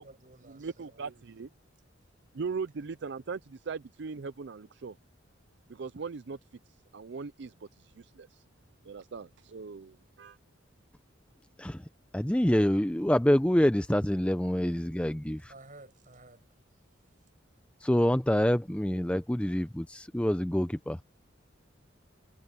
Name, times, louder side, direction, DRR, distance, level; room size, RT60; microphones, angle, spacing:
voice 1, 0.0-1.2 15.4-16.8 17.1-17.2, right 2 dB, 45° right, 6.6 m, -54 dB
voice 2, 0.6-1.5 2.3-4.9 5.7-6.4 6.9-7.5 8.0-8.3 8.9-10.4, right 5 dB, 60° right, 0.5 m, -39 dB
voice 3, 12.1-15.5 17.8-21.0, equal, 5° left, 0.6 m, -26 dB
head